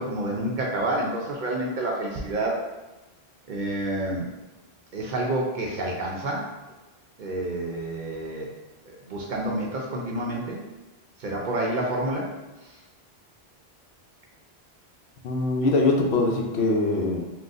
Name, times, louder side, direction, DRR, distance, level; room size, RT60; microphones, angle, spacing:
voice 1, 0.0-2.7 3.5-4.3 4.9-6.4 7.2-8.5 8.9-10.6 11.2-12.3, right 1 dB, 55° right, -2 dB, 0.6 m, -28 dB
voice 2, 15.2-17.2, left 2 dB, 75° left, 1 dB, 0.8 m, -22 dB
3.8 x 2.3 x 2.5 m, 1.1 s
omnidirectional pair, 1.1 m